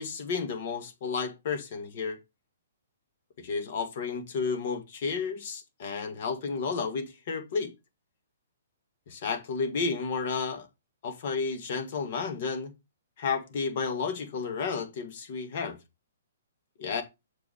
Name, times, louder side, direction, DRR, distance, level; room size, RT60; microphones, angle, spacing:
voice 1, 0.0-2.2 3.4-7.7 9.1-10.7 11.0-12.7 13.2-15.8 16.8-17.0, left 5 dB, 50° left, 2.0 m, -32 dB
7.2 x 4.9 x 4.8 m
hypercardioid pair, 155°, 0 cm